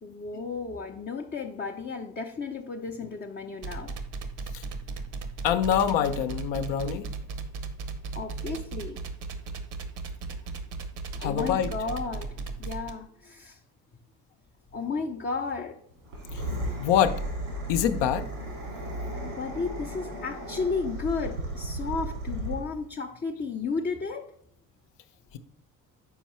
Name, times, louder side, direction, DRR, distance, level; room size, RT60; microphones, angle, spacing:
voice 1, 0.0-3.9 8.1-9.0 11.2-13.6 14.7-15.8 19.2-24.3, left 4 dB, 25° left, 2 dB, 0.5 m, -33 dB
sound 1, 3.6-12.9, right 4 dB, 60° right, 0.9 m, -36 dB
voice 2, 5.4-7.1 11.2-11.7 16.3-16.5 16.8-17.2 17.7-18.3, left 9 dB, 65° left, 10 dB, 0.7 m, -25 dB
sound 2, 16.0-22.8, right 1 dB, 90° right, 2.2 m, -35 dB
5.6 x 4.6 x 4.3 m, 0.70 s
hypercardioid pair, 55°, 46 cm